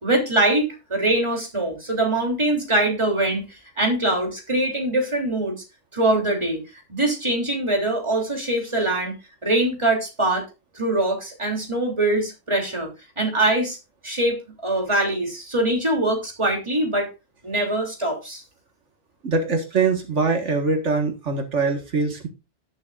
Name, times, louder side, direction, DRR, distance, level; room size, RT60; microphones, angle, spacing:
voice 1, 0.0-3.4 3.8-5.6 5.9-6.6 6.9-9.2 9.4-10.5 10.7-12.9 13.2-13.8 14.0-17.1 17.4-18.4, right 1 dB, 25° right, 1 dB, 3.4 m, -23 dB
voice 2, 19.2-22.3, right 4 dB, 80° right, 4 dB, 2.0 m, -23 dB
18.0 x 7.1 x 2.5 m, 0.27 s
omnidirectional pair, 1.2 m